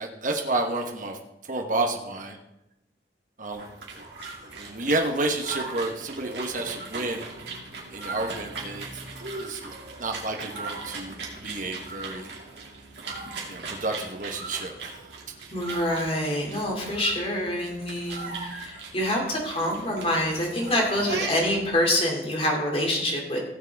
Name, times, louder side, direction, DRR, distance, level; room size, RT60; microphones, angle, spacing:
voice 1, 0.0-2.4 3.4-3.6 3.9-4.1 4.4-7.3 7.9-8.9 9.3-12.3 13.5-15.0 21.0-21.1, right 2 dB, 45° right, 3 dB, 1.1 m, -30 dB
sound 1, 3.5-21.7, right 3 dB, 65° right, 2.6 m, -38 dB
voice 2, 15.5-23.4, left 1 dB, 30° left, 0 dB, 2.6 m, -26 dB
16.5 x 7.4 x 3.5 m, 0.91 s
head